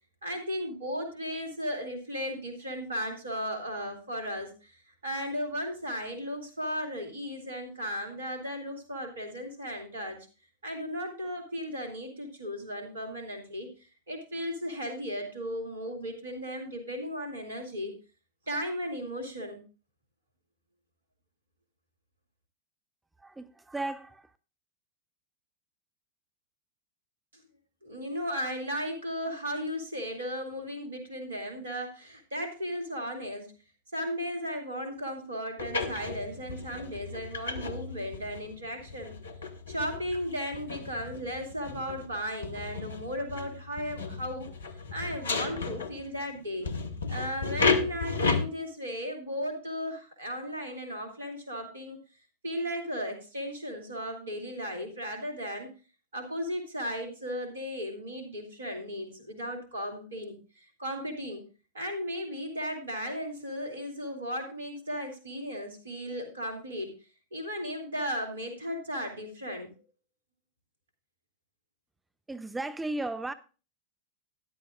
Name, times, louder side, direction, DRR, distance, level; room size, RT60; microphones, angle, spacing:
voice 1, 0.2-10.2 10.6-17.9 18.5-19.6 27.8-33.5 33.9-39.1 39.7-44.5 44.9-46.7 47.1-52.0 52.4-55.7 56.1-61.5 61.7-67.0 67.3-69.7, equal, 70° right, 2.4 m, -35 dB
voice 2, 23.2-24.4 72.3-73.3, right 2 dB, 10° right, 0.5 m, -35 dB
sound 1, 35.6-46.2 46.6-48.4, left 4 dB, 70° left, 1.1 m, -33 dB
14.0 x 10.5 x 2.4 m
figure-of-eight pair, 90°, 0 cm